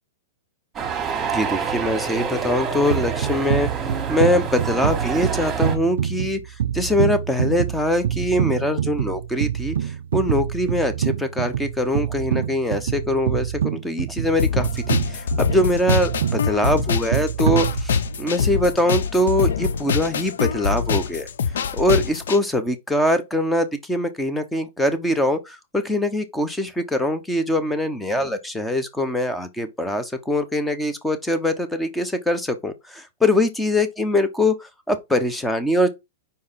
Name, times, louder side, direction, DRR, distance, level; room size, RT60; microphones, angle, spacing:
sound 1, 0.7-5.8, right 6 dB, 15° right, 2.1 m, -27 dB
voice 1, 1.2-3.7 4.1-6.4 6.7-21.3 21.7-34.5 34.9-35.9, left 1 dB, 5° left, 1.0 m, -23 dB
sound 2, 2.9-18.3, right 10 dB, 80° right, 0.4 m, -26 dB
sound 3, 14.4-22.4, left 6 dB, 85° left, 0.8 m, -24 dB
5.3 x 4.7 x 5.6 m
supercardioid pair, 155°, 0 cm